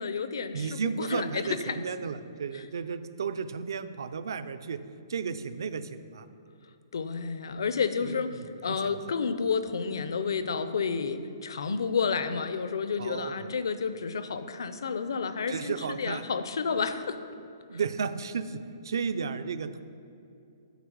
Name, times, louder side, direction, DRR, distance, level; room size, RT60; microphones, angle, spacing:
voice 1, 0.0-1.8 6.9-17.2, left 5 dB, 70° left, 11 dB, 0.6 m, -30 dB
voice 2, 0.5-4.8 5.1-6.3 8.0-9.1 13.0-13.6 15.5-16.2 17.7-18.6 18.8-19.8, right 5 dB, 65° right, 12 dB, 0.5 m, -34 dB
8.2 x 5.8 x 6.2 m, 2.6 s
hypercardioid pair, 180°, 2 cm